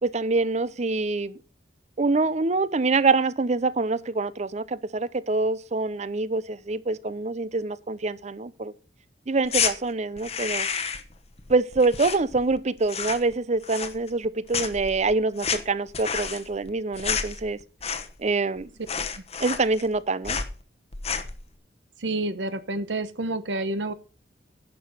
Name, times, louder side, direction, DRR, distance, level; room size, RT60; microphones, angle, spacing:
voice 1, 0.0-1.4 2.0-8.7 9.3-10.7 11.5-17.6 18.2-18.7 19.4-20.4, right 3 dB, 40° right, 0.6 m, -25 dB
sound 1, 9.4-9.7 10.2-11.1 11.4-12.6 12.8-13.3 13.6-14.3 14.5-18.3 18.6-18.7 18.9-20.0 20.2-20.5 20.9-21.4, left 6 dB, 35° left, 1.0 m, -30 dB
voice 2, 22.0-23.9, right 2 dB, 85° right, 0.9 m, -29 dB
11.0 x 5.9 x 6.6 m
head